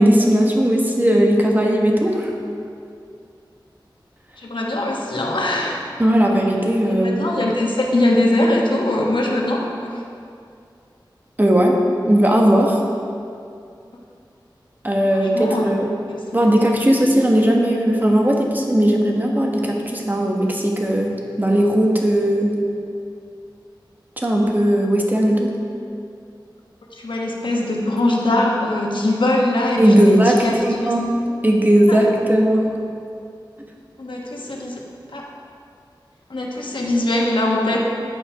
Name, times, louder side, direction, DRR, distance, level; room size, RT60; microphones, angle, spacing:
voice 1, 0.0-2.3 6.0-7.3 11.4-11.8 12.1-12.8 14.8-15.9 16.3-22.6 24.2-25.5 29.8-31.1 31.4-32.7, equal, 20° right, 0 dB, 1.3 m, -17 dB
voice 2, 4.4-5.8 6.9-10.0 15.1-15.7 16.1-16.3 27.0-30.5 30.8-30.9 31.9-32.0 34.0-34.8 35.1-35.2 36.3-37.9, left 1 dB, 75° left, -2 dB, 1.2 m, -21 dB
9.3 x 5.8 x 4.8 m, 2.4 s
wide cardioid pair, 55°, 8 cm